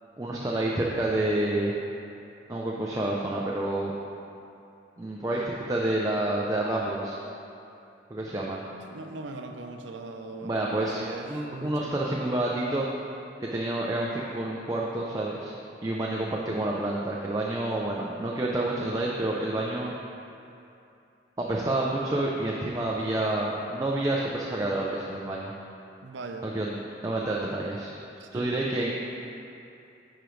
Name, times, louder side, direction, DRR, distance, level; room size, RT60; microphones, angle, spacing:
voice 1, 0.2-1.7 2.5-4.0 5.0-7.2 8.1-8.6 10.4-11.0 11.3-12.9 13.4-15.5 15.8-19.9 21.4-25.5 26.4-26.7 27.0-27.9 28.3-29.0, right 1 dB, 20° right, -3 dB, 0.4 m, -28 dB
voice 2, 8.8-12.1 26.0-26.5 28.2-28.6, right 3 dB, 85° right, 4 dB, 0.5 m, -40 dB
9.8 x 4.9 x 3.1 m, 2.7 s
head